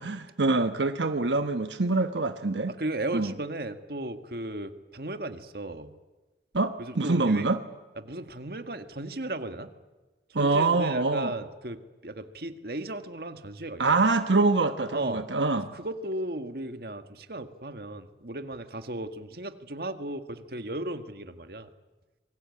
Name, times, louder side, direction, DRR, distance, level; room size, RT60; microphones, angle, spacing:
voice 1, 0.0-2.7 3.1-3.3 6.5-7.6 10.3-11.3 13.8-15.7, right 3 dB, 85° right, 8 dB, 1.2 m, -25 dB
voice 2, 2.8-5.9 6.8-7.5 8.0-9.7 10.3-14.0 14.9-15.2 15.6-21.7, right 1 dB, 55° right, 8 dB, 1.8 m, -35 dB
27.5 x 23.0 x 8.5 m, 1.2 s
head